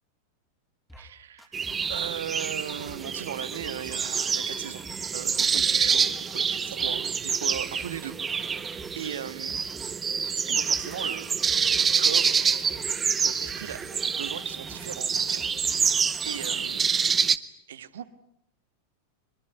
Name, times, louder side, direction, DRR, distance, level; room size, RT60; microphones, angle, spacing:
sound 1, 0.9-1.1 1.4-2.1 2.4-9.0 9.3-10.0 10.2-16.6, left 1 dB, ahead, 3.3 m, -49 dB
voice 1, 1.0-1.6 1.9-4.8 5.1-8.7 8.9-9.6 10.5-12.8 13.2-16.9 17.7-18.1, right 9 dB, 60° right, 14 dB, 1.6 m, -38 dB
sound 2, 1.5-17.4, right 6 dB, 20° right, 1.0 m, -27 dB
23.5 x 23.0 x 9.6 m, 0.72 s
figure-of-eight pair, 90°, 0 cm